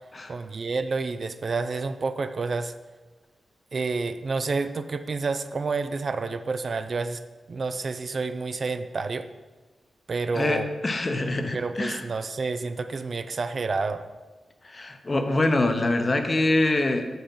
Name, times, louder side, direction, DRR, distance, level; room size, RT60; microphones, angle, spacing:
voice 1, 0.3-2.7 3.7-7.2 7.5-9.3 10.1-10.7 11.5-14.0, right 4 dB, 55° right, 10 dB, 0.4 m, -29 dB
voice 2, 10.3-12.0 14.6-17.1, left 2 dB, 35° left, 7 dB, 0.8 m, -24 dB
6.8 x 5.4 x 5.8 m, 1.3 s
cardioid pair, 75°, 0 cm